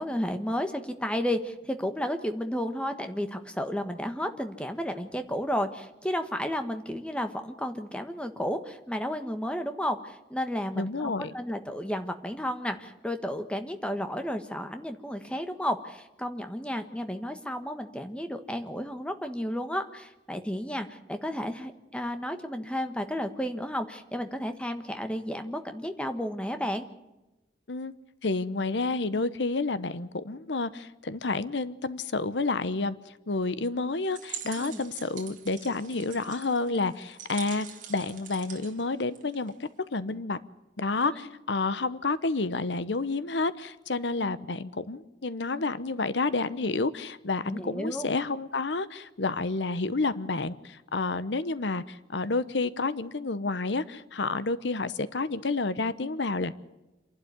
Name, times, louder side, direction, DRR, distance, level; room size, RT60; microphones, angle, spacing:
voice 1, 0.0-26.9 34.5-34.8 41.0-41.3 47.4-48.1, equal, 5° left, 7 dB, 1.3 m, -32 dB
voice 2, 10.7-11.3 27.7-27.9 28.2-33.0 33.3-40.4 40.8-56.5, left 3 dB, 80° left, 15 dB, 0.9 m, -30 dB
sound 1, 34.0-39.7, right 8 dB, 45° right, 2.3 m, -44 dB
27.5 x 12.0 x 9.4 m, 1.0 s
head